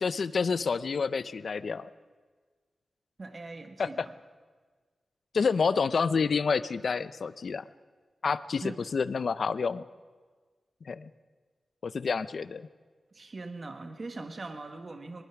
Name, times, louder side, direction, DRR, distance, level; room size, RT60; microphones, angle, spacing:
voice 1, 0.0-1.9 3.8-4.1 5.3-7.6 8.2-8.6 8.9-9.8 10.9-11.1 11.8-12.7, left 5 dB, 60° left, 15 dB, 0.6 m, -28 dB
voice 2, 3.2-4.1 8.6-8.8 13.1-15.2, right 3 dB, 40° right, 6 dB, 1.4 m, -41 dB
22.5 x 20.0 x 5.9 m, 1.5 s
wide cardioid pair, 125°, 0 cm